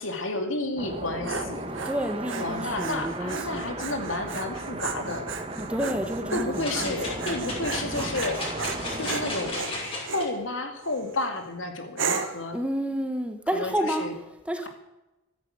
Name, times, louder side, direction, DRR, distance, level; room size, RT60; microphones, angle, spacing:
voice 1, 0.0-1.7 2.3-5.3 6.3-8.4 9.0-12.6 13.5-14.1, left 2 dB, 75° left, 5 dB, 2.6 m, -31 dB
sound 1, 0.8-9.5, right 2 dB, 30° right, 1.5 m, -36 dB
Dog, 0.9-10.3 10.9-11.3 12.0-12.5, right 5 dB, 70° right, 1.5 m, -35 dB
voice 2, 1.8-3.6 5.5-7.3 12.5-14.7, equal, 5° right, 6 dB, 1.3 m, -30 dB
sound 2, 6.6-10.3 10.8-10.9, left 2 dB, 25° left, 5.8 m, -34 dB
14.0 x 10.0 x 8.8 m, 0.97 s
head